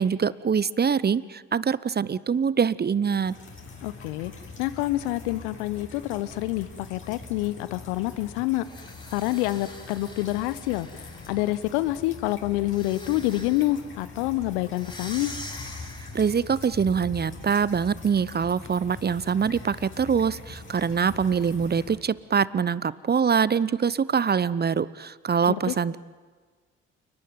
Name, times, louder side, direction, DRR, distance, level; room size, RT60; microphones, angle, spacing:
voice 1, 0.0-3.4 16.1-26.0, right 6 dB, 30° right, 19 dB, 0.9 m, -24 dB
sound 1, 3.2-22.0, left 3 dB, 35° left, 7.0 m, -43 dB
voice 2, 3.8-4.3 4.6-8.7 9.1-15.4 25.5-25.7, left 17 dB, 75° left, 16 dB, 1.0 m, -27 dB
sound 2, 8.6-11.6 12.7-13.8 14.7-16.4, left 1 dB, 15° left, 6.9 m, -44 dB
29.5 x 18.5 x 9.1 m, 1.4 s
figure-of-eight pair, 45°, 34 cm